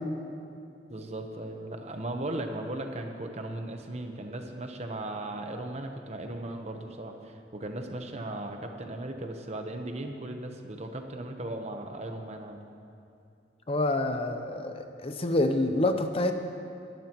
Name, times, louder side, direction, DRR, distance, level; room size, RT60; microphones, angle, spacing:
voice 1, 0.9-12.6, right 1 dB, 40° right, 4 dB, 1.0 m, -37 dB
voice 2, 13.7-16.3, left 2 dB, 35° left, 7 dB, 0.6 m, -27 dB
22.5 x 12.0 x 3.0 m, 2.6 s
head